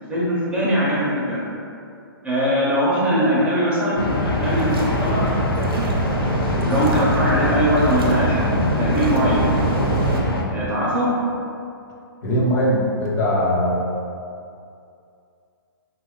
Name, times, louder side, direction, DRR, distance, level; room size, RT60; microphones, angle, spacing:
voice 1, 0.1-1.4 2.2-5.2 5.5-6.2 6.6-9.4 10.5-11.1, equal, 10° right, -8 dB, 0.6 m, -21 dB
sound 1, 4.0-10.4, left 2 dB, 80° left, 0.5 m, -24 dB
sound 2, 4.4-10.2, right 2 dB, 80° right, 0.6 m, -25 dB
voice 2, 12.2-13.8, equal, 50° left, -4 dB, 0.8 m, -20 dB
2.9 x 2.3 x 3.6 m, 2.5 s
hypercardioid pair, 145°, 12 cm